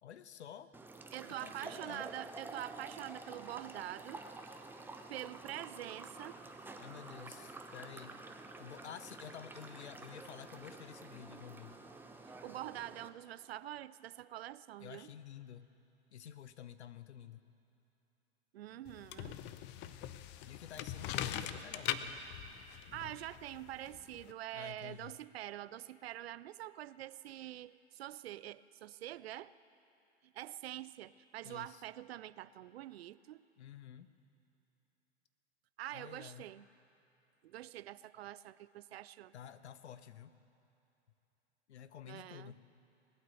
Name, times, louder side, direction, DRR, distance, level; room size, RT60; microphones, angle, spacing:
voice 1, 0.0-0.7 1.4-2.1 6.8-8.2 8.6-11.8 14.8-15.7 16.1-17.4 20.4-22.2 24.5-25.1 31.4-31.8 33.6-34.1 35.9-36.5 39.3-40.3 41.7-42.6, left 9 dB, 75° left, 13 dB, 0.8 m, -51 dB
sound 1, 0.7-13.1, right 2 dB, 5° right, 0.8 m, -50 dB
voice 2, 1.1-4.2 5.1-6.4 12.3-15.1 18.5-19.4 22.7-29.5 30.2-33.4 35.8-36.7 37.4-39.3 42.0-42.5, right 13 dB, 65° right, 18 dB, 0.5 m, -46 dB
sound 2, 18.9-24.3, left 11 dB, 30° left, 0.6 m, -42 dB
20.0 x 9.1 x 7.7 m, 2.9 s
figure-of-eight pair, 100°, 34 cm